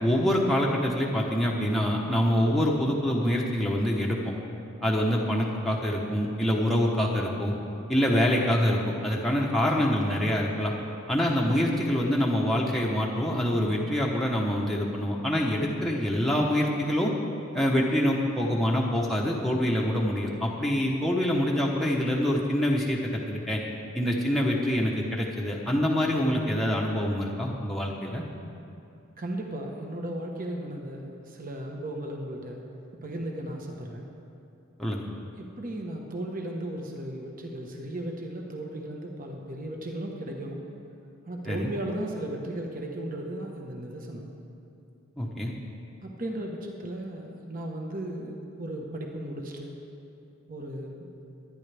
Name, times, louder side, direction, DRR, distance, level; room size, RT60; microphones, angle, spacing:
voice 1, 0.0-4.3 4.8-7.5 7.9-10.7 11.1-17.1 17.5-23.6 23.9-28.2 34.8-35.0 41.4-41.7 45.2-45.5, equal, ahead, -4 dB, 0.9 m, -25 dB
voice 2, 29.2-32.6 33.0-34.1 35.4-40.6 41.3-44.3 46.0-49.8 50.5-51.1, right 1 dB, 40° right, 1 dB, 1.2 m, -36 dB
23.0 x 9.9 x 3.4 m, 2.6 s
head